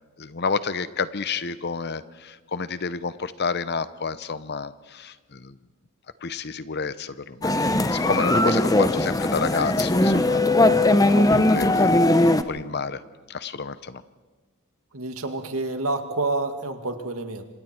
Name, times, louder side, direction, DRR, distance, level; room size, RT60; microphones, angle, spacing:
voice 1, 0.2-5.6 6.2-11.9 12.2-13.0 13.3-14.0, left 5 dB, 50° left, 14 dB, 0.9 m, -30 dB
sound 1, 7.4-12.4, left 1 dB, 15° left, 0.8 m, -19 dB
voice 2, 14.9-17.4, right 2 dB, 85° right, 6 dB, 2.1 m, -29 dB
27.5 x 26.0 x 4.5 m, 1.3 s
head